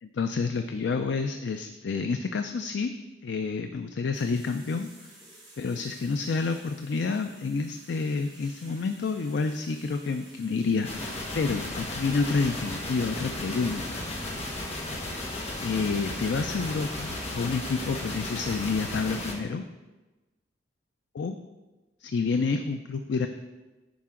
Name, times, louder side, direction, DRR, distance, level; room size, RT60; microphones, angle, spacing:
voice 1, 0.0-2.9 3.2-4.9 5.6-14.0 15.6-19.6 21.1-21.4 22.0-23.3, left 4 dB, 70° left, 7 dB, 0.4 m, -29 dB
sound 1, 4.1-18.8, right 1 dB, ahead, 2.8 m, -53 dB
sound 2, 10.8-19.3, left 1 dB, 40° left, 1.2 m, -35 dB
10.0 x 4.8 x 3.7 m, 1.1 s
head